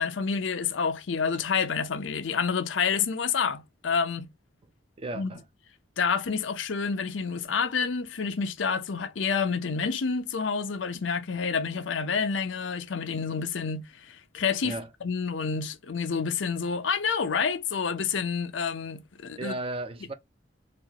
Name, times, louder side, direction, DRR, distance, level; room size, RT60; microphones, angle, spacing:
voice 1, 0.0-4.3 5.1-5.3 6.0-19.5, left 5 dB, 90° left, 0.6 m, -28 dB
voice 2, 5.0-5.4 14.6-14.9 19.4-20.1, right 2 dB, 30° right, 0.5 m, -34 dB
4.2 x 2.5 x 2.8 m
head